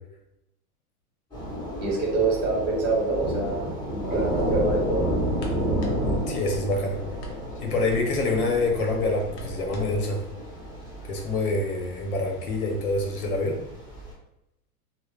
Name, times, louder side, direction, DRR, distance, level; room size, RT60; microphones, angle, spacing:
Thunder / Rain, 1.3-14.1, equal, 10° left, 1.3 m, -31 dB
voice 1, 1.8-5.1, right 3 dB, 25° right, -3 dB, 0.8 m, -26 dB
sound 1, 4.0-10.0, equal, 50° left, 0.7 m, -41 dB
voice 2, 6.3-7.0 7.6-10.2 11.1-13.6, left 2 dB, 80° left, 1 dB, 0.8 m, -26 dB
2.9 x 2.0 x 2.3 m, 0.88 s
hypercardioid pair, 120°, 43 cm